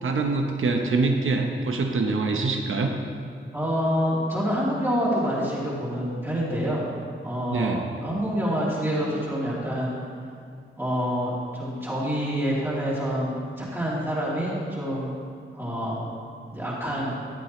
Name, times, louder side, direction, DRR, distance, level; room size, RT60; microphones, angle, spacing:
voice 1, 0.0-2.9 7.5-7.9, right 3 dB, 75° right, 3 dB, 0.9 m, -24 dB
voice 2, 3.5-6.8 7.2-9.9 10.8-15.1 15.5-16.1 16.5-17.1, equal, 10° right, -8 dB, 2.7 m, -27 dB
14.0 x 8.3 x 3.1 m, 2.3 s
wide cardioid pair, 95°, 21 cm